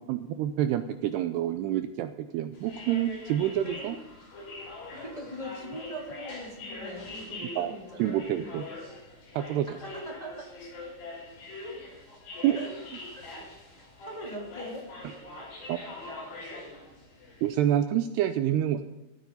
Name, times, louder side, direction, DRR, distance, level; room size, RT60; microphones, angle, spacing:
voice 1, 0.1-4.0 7.6-8.6 9.4-9.7 12.4-12.6 15.0-15.1 15.7-15.8 17.4-18.8, right 11 dB, 90° right, 9 dB, 2.4 m, -27 dB
sound 1, 2.5-17.5, left 2 dB, 80° left, 8.1 m, -43 dB
voice 2, 5.0-8.4 9.8-10.3 12.5-12.7 13.1-13.2 13.8-14.8, equal, 10° left, -4 dB, 2.9 m, -41 dB
16.5 x 13.5 x 4.1 m, 1.0 s
omnidirectional pair, 5.4 m